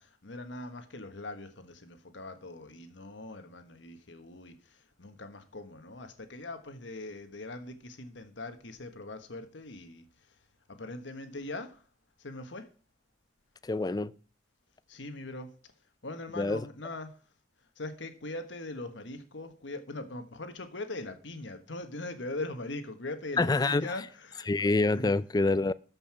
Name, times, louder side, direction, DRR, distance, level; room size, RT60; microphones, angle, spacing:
voice 1, 0.0-10.0 10.7-11.8 12.2-12.7 14.9-15.5 16.0-17.2 17.8-24.5 24.9-25.1, left 2 dB, 85° left, 1.4 m, -41 dB
voice 2, 13.6-14.1 16.3-16.7 23.4-23.9 24.5-25.7, left 2 dB, 20° left, 0.4 m, -26 dB
13.5 x 5.5 x 6.0 m
head